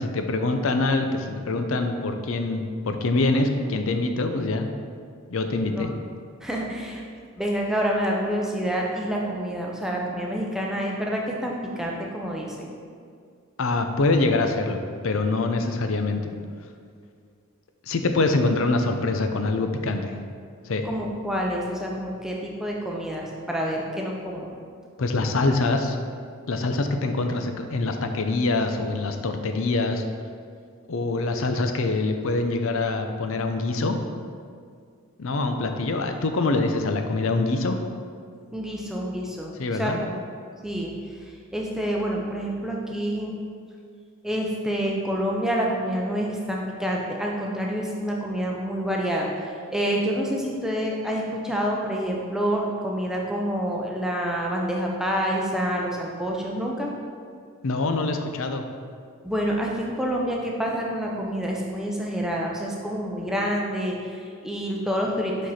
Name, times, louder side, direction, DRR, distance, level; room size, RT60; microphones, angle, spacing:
voice 1, 0.0-4.7 5.3-5.9 13.6-16.2 17.8-20.2 20.6-20.9 25.0-26.0 26.5-30.0 30.9-34.0 35.2-37.8 39.6-40.0 57.6-58.6, left 3 dB, 70° left, 6 dB, 0.5 m, -24 dB
voice 2, 6.4-7.0 7.4-12.7 20.8-24.5 38.5-40.2 40.6-40.9 41.5-43.3 44.2-56.9 59.2-65.5, equal, ahead, -2 dB, 0.6 m, -28 dB
5.8 x 5.2 x 4.1 m, 2.2 s
head